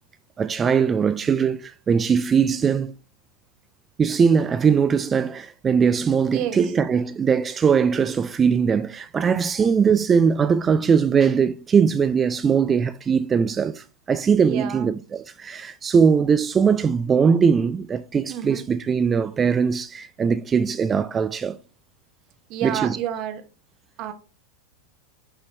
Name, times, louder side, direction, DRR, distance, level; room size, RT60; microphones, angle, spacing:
voice 1, 0.4-3.0 4.0-21.6 22.6-23.0, right 6 dB, 20° right, 0.3 m, -20 dB
voice 2, 14.4-14.9 18.3-18.6 22.5-23.4 24.0-24.1, right 10 dB, 40° right, 1.0 m, -29 dB
6.7 x 5.3 x 3.0 m
figure-of-eight pair, 90°, 0 cm